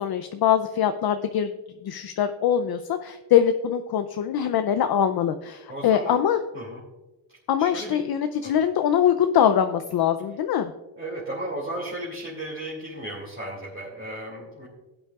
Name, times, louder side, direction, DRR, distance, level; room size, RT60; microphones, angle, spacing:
voice 1, 0.0-1.5 1.8-6.4 7.5-10.7, left 9 dB, 50° left, 8 dB, 0.6 m, -23 dB
voice 2, 5.7-6.2 6.5-6.8 7.6-8.0 8.4-8.5 11.0-14.7, right 1 dB, 25° right, -5 dB, 2.5 m, -35 dB
15.5 x 8.7 x 2.4 m, 1.1 s
cardioid pair, 95°, 48 cm